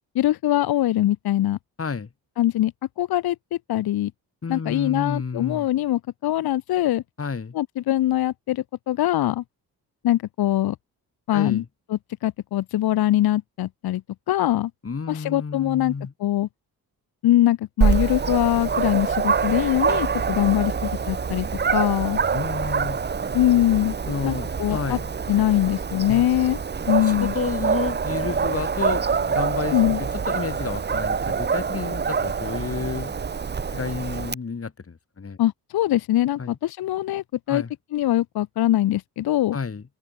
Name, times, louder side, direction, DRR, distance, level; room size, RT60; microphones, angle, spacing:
voice 1, 0.1-1.6 2.4-2.7 3.0-4.1 4.5-7.0 7.5-9.4 10.0-10.8 11.3-11.6 11.9-14.0 14.3-14.7 15.1-15.9 16.2-16.5 17.2-21.5 21.7-22.2 23.3-23.9 24.2-25.0 25.3-26.6 26.9-27.3 29.7-30.0 35.4-37.6 37.9-39.6, left 14 dB, 65° left, 0.8 m, -22 dB
voice 2, 1.8-2.1 4.4-5.7 7.2-7.5 11.3-11.6 14.8-16.1 22.3-23.0 24.1-25.1 26.1-26.2 27.0-33.2 33.7-35.4 36.4-36.6 37.5-37.7 39.5-39.8, left 5 dB, 35° left, 2.8 m, -30 dB
Dog, 17.8-34.3, right 6 dB, 25° right, 0.8 m, -25 dB
cardioid pair, 65°, 40 cm